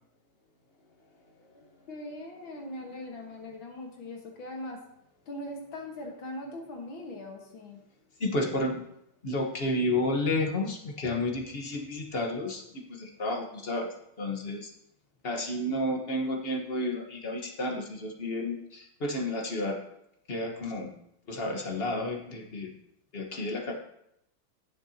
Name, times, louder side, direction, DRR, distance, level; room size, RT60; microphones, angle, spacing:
voice 1, 1.4-4.8 5.3-7.8, left 1 dB, 75° left, 1 dB, 2.2 m, -41 dB
voice 2, 8.2-8.8 9.2-13.9 14.2-14.7 15.2-19.8 20.3-20.9 21.3-22.7 23.1-23.7, left 1 dB, 35° left, 2 dB, 1.3 m, -31 dB
16.0 x 6.9 x 2.9 m, 0.78 s
omnidirectional pair, 2.2 m